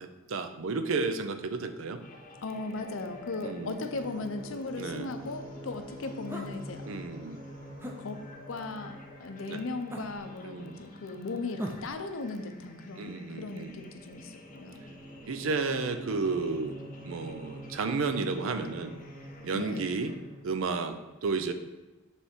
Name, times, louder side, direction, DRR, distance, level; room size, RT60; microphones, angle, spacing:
voice 1, 0.0-2.0 3.4-3.7 4.8-5.1 6.9-7.5 9.5-9.6 10.4-10.8 13.0-13.7 15.2-16.8 17.0-18.9 19.4-20.1 20.4-21.0 21.2-21.5, right 4 dB, 75° right, 9 dB, 0.5 m, -32 dB
sound 1, 1.4-20.6, equal, 40° right, 1.3 m, -47 dB
sound 2, 2.0-20.2, left 2 dB, 40° left, 0.7 m, -53 dB
voice 2, 2.4-6.8 8.0-8.2 8.5-14.8 19.5-19.9, left 3 dB, 75° left, 7 dB, 0.6 m, -37 dB
sound 3, 6.3-6.6 7.8-8.0 9.9-10.3 11.6-12.0, equal, 10° right, 0.6 m, -39 dB
7.1 x 3.4 x 4.4 m, 1.1 s
head